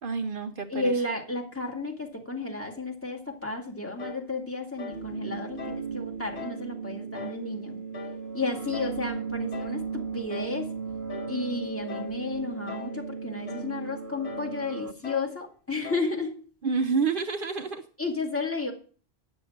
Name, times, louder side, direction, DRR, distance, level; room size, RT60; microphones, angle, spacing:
voice 1, 0.0-0.9 16.6-17.8, right 5 dB, 60° right, 7 dB, 0.9 m, -28 dB
voice 2, 0.7-7.8 8.3-10.7 11.3-16.4 18.0-18.7, left 3 dB, 10° left, 2 dB, 2.2 m, -32 dB
sound 1, 4.0-4.3 4.8-5.1 5.6-5.9 6.4-6.6 7.1-7.5 7.9-8.2 8.7-9.0 9.5-9.8 10.3-10.6 11.1-11.4 11.9-12.2 12.7-13.0 13.5-13.7 14.2-14.5 15.0-15.3 15.8-16.1, left 6 dB, 80° left, 1.3 m, -41 dB
sound 2, 4.9-14.9, right 5 dB, 75° right, 1.2 m, -36 dB
10.0 x 7.0 x 7.2 m, 0.42 s
omnidirectional pair, 1.1 m